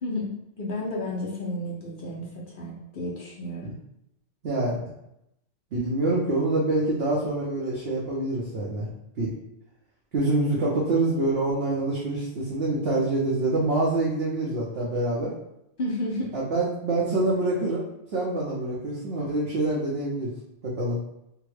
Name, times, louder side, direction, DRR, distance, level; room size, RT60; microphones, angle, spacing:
voice 1, 0.0-3.7 15.8-16.4, left 1 dB, 55° left, -3 dB, 0.7 m, -32 dB
voice 2, 4.4-4.8 5.7-8.9 9.2-9.3 10.1-15.3 16.3-17.8 18.1-20.3 20.6-21.0, right 2 dB, 60° right, -6 dB, 0.9 m, -26 dB
3.4 x 2.1 x 3.2 m, 0.82 s
omnidirectional pair, 1.3 m